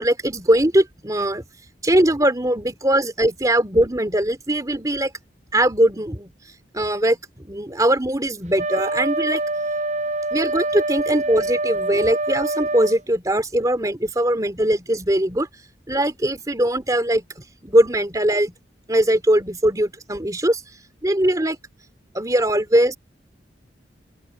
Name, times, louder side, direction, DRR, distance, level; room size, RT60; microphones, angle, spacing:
voice 1, 0.0-1.5 1.8-5.1 5.5-6.3 6.7-9.4 10.3-15.5 15.9-18.5 18.9-20.6 21.0-21.6 22.1-23.0, right 1 dB, 20° right, 2.7 m, -20 dB
Wind instrument woodwind instrument, 8.6-13.0, right 2 dB, 40° right, 6.9 m, -25 dB
open air
head